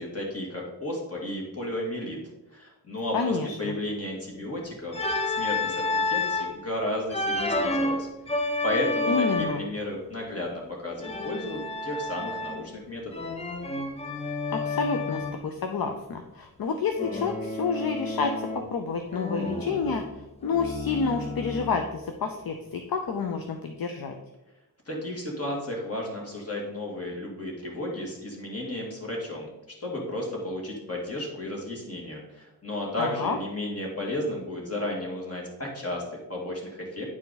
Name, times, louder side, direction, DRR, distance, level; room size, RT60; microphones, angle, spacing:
voice 1, 0.0-2.2 2.5-13.3 24.9-29.5 29.8-37.0, left 1 dB, 40° left, -2 dB, 2.2 m, -33 dB
voice 2, 3.1-3.7 9.1-9.6 14.5-20.0 20.4-24.1 33.0-33.4, left 5 dB, 65° left, 5 dB, 0.6 m, -29 dB
Organ, 4.9-6.6 7.1-9.8 11.0-12.8 13.1-15.4 17.0-18.8 19.1-21.8, left 2 dB, 15° left, 0.5 m, -30 dB
9.7 x 4.6 x 4.0 m, 1.0 s
wide cardioid pair, 135°, 38 cm